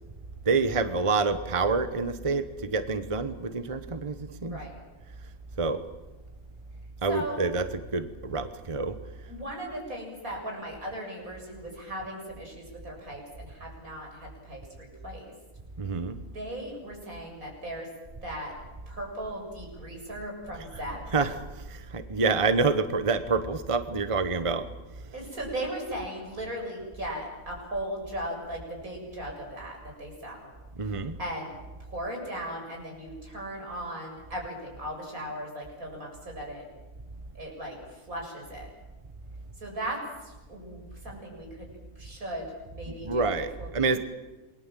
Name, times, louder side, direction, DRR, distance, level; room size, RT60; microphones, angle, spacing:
voice 1, 0.4-4.6 5.6-5.8 7.0-9.0 15.8-16.2 20.6-20.8 21.1-21.4 21.7-24.6 30.8-31.2 43.0-44.0, right 4 dB, 25° right, 10 dB, 1.1 m, -27 dB
voice 2, 4.5-4.8 7.0-7.5 9.3-15.3 16.3-17.9 18.2-18.5 18.9-21.0 25.1-30.5 30.9-31.5 31.8-36.7 37.3-38.7 39.6-43.9, right 1 dB, 75° right, 0 dB, 7.8 m, -37 dB
28.0 x 21.5 x 7.6 m, 1.1 s
omnidirectional pair, 1.5 m